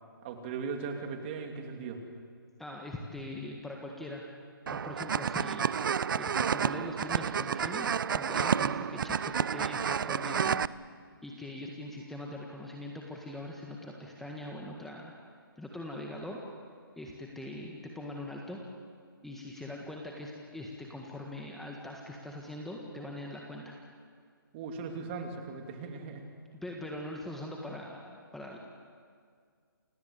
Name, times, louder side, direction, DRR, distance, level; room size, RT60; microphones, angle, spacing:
voice 1, 0.2-2.0 24.5-26.2, right 5 dB, 30° right, 4 dB, 2.8 m, -38 dB
voice 2, 2.6-4.3 4.7-5.7 6.2-10.6 11.2-15.1 15.6-16.4 17.0-18.6 19.2-23.8 26.5-28.6, left 1 dB, ahead, -1 dB, 1.7 m, -42 dB
sound 1, 4.7-10.6, right 7 dB, 60° right, 0.6 m, -30 dB
28.5 x 18.0 x 8.3 m, 2.1 s
hypercardioid pair, 155°, 12 cm